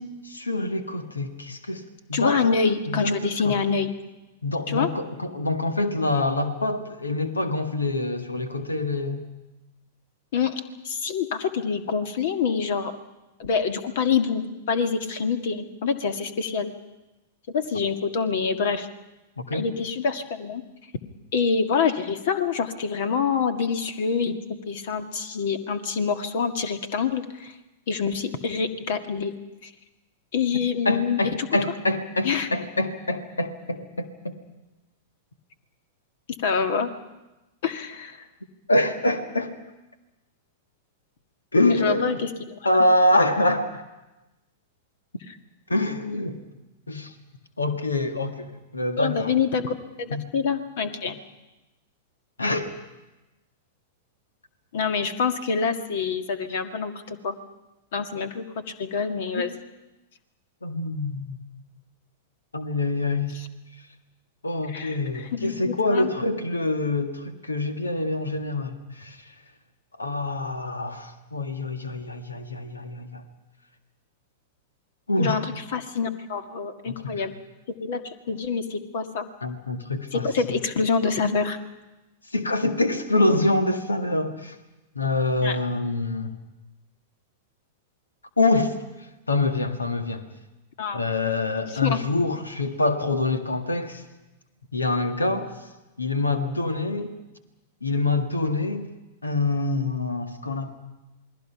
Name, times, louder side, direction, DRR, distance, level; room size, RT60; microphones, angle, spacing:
voice 1, 0.0-1.8 2.1-2.5 2.9-3.6 4.4-9.2 19.4-19.7 30.9-34.4 38.7-39.5 41.5-42.2 42.6-43.8 45.7-46.4 46.9-47.1 47.6-49.3 50.1-50.2 52.4-52.8 59.4-59.5 60.6-61.4 62.5-63.3 64.4-69.2 70.0-73.2 75.1-75.4 76.9-77.3 79.4-80.3 82.3-84.6 85.0-86.3 88.4-88.7 89.3-90.2 90.9-94.0 94.7-95.5 96.0-97.2 97.8-98.9 99.2-100.8, left 2 dB, 85° left, 7 dB, 1.8 m, -25 dB
voice 2, 2.1-3.9 4.7-4.9 10.3-12.9 13.4-16.7 17.5-18.9 19.5-20.6 21.3-24.4 24.7-27.5 27.9-29.3 29.6-29.7 30.3-31.2 32.2-32.5 36.4-36.9 37.6-38.2 41.8-42.3 49.0-51.2 54.7-57.4 57.9-59.5 64.7-66.1 75.2-77.3 77.8-79.3 80.1-81.6 85.4-85.6 90.8-91.0 91.6-92.0, left 5 dB, 60° left, 7 dB, 1.9 m, -26 dB
28.0 x 20.5 x 5.8 m, 1.0 s
figure-of-eight pair, 100°, 0 cm